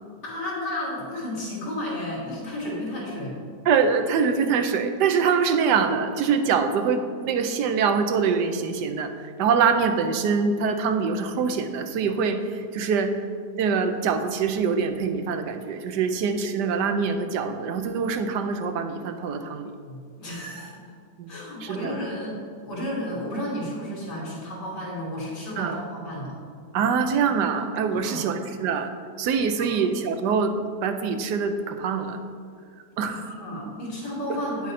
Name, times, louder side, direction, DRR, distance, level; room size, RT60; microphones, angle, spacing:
voice 1, 0.2-3.3 19.8-20.7 21.3-22.4 22.7-26.3 27.9-28.2 29.7-29.8 33.0-34.7, left 1 dB, 90° left, -5 dB, 3.2 m, -32 dB
voice 2, 3.7-9.1 9.4-13.2 13.6-19.7 21.2-21.3 21.6-22.0 25.6-25.8 26.7-28.9 29.2-30.5 30.8-32.2 33.0-33.2, right 5 dB, 90° right, 7 dB, 1.3 m, -24 dB
9.3 x 7.6 x 4.2 m, 2.2 s
omnidirectional pair, 1.8 m